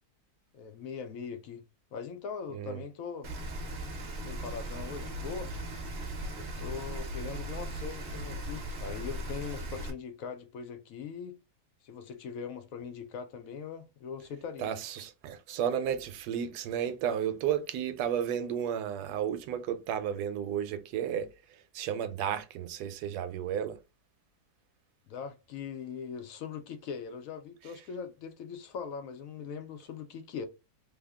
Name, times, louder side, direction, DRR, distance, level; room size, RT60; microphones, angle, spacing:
voice 1, 0.5-1.6 1.9-3.3 4.2-5.5 6.3-11.4 11.8-14.7 25.1-30.5, left 6 dB, 70° left, 0.9 m, -41 dB
voice 2, 2.5-2.8 14.6-21.3 21.7-23.8, right 9 dB, 90° right, 1.1 m, -33 dB
Rain, 3.2-9.9, right 1 dB, 50° right, 1.0 m, -38 dB
3.4 x 2.2 x 3.4 m
omnidirectional pair, 1.6 m